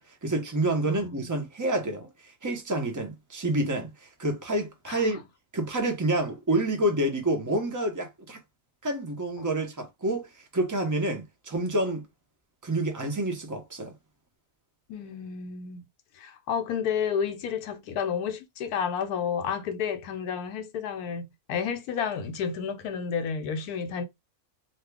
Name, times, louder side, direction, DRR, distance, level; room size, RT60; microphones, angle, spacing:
voice 1, 0.0-5.2 5.5-8.4 8.8-12.1 12.6-13.9, right 1 dB, 20° right, 0.5 m, -28 dB
voice 2, 0.8-1.3 4.9-5.0 9.4-9.5 14.9-15.8 16.1-24.0, left 7 dB, 80° left, 1.1 m, -31 dB
2.8 x 2.3 x 3.3 m
omnidirectional pair, 1.6 m